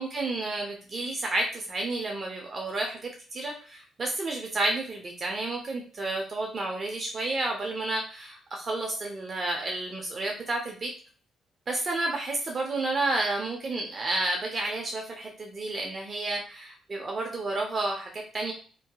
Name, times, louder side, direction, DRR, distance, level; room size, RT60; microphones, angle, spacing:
voice 1, 0.0-10.9 11.7-18.5, right 2 dB, 40° right, 1 dB, 0.5 m, -31 dB
2.7 x 2.7 x 2.3 m, 0.41 s
cardioid pair, 90°, 0 cm